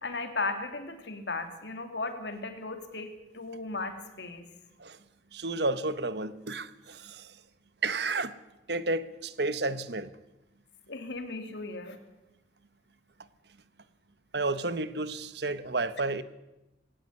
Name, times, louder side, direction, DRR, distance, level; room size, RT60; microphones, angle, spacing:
voice 1, 0.0-4.5 10.9-12.0, left 3 dB, 70° left, 7 dB, 3.0 m, -36 dB
voice 2, 5.3-7.4 7.8-8.3 8.7-10.1 14.3-16.2, right 3 dB, 60° right, 13 dB, 1.3 m, -31 dB
20.5 x 17.5 x 9.7 m, 0.97 s
head